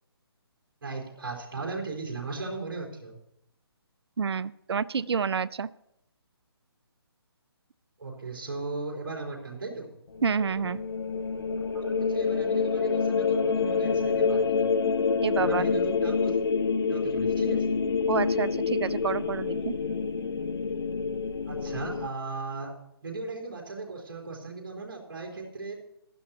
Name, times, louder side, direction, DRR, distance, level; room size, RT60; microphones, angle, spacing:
voice 1, 0.8-3.1 8.0-9.9 11.5-14.7 15.3-16.4 16.9-17.8 21.5-22.7 23.0-25.7, right 3 dB, 55° right, -1 dB, 4.0 m, -37 dB
voice 2, 4.2-5.7 10.2-10.8 15.2-15.7 18.1-19.7, right 6 dB, 75° right, 19 dB, 0.4 m, -28 dB
sound 1, 10.1-22.1, left 5 dB, 65° left, 0.7 m, -27 dB
15.5 x 12.0 x 2.9 m, 0.83 s
figure-of-eight pair, 150°, 13 cm